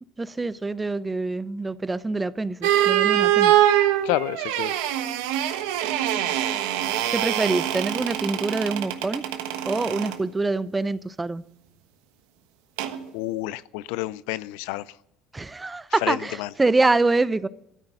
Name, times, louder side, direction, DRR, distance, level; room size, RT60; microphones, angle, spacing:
voice 1, 0.2-3.7 7.1-9.2 9.6-11.4 15.3-17.5, right 3 dB, 20° right, 0.6 m, -25 dB
sound 1, 2.6-10.2 12.8-13.0, right 12 dB, 80° right, 1.2 m, -23 dB
voice 2, 4.0-4.7 13.1-14.9 16.0-16.5, left 17 dB, 80° left, 0.4 m, -29 dB
13.0 x 9.7 x 9.1 m
supercardioid pair, 80°, 0 cm